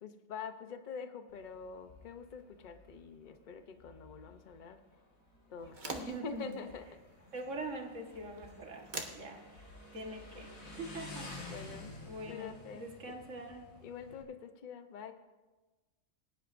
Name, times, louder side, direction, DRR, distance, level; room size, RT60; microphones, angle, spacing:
voice 1, 0.0-4.8 5.5-7.0 11.5-11.9 12.3-12.9 13.8-15.1, left 5 dB, 40° left, 8 dB, 0.8 m, -45 dB
Motorcycle, 1.3-14.2, left 2 dB, 80° left, 2.2 m, -52 dB
sound 1, 5.6-12.0, right 2 dB, 35° right, 1.2 m, -49 dB
voice 2, 5.9-6.6 7.3-8.9 9.1-11.5 12.1-13.7, right 2 dB, 65° right, 2 dB, 1.9 m, -44 dB
21.5 x 10.5 x 2.6 m, 1.2 s
omnidirectional pair, 1.4 m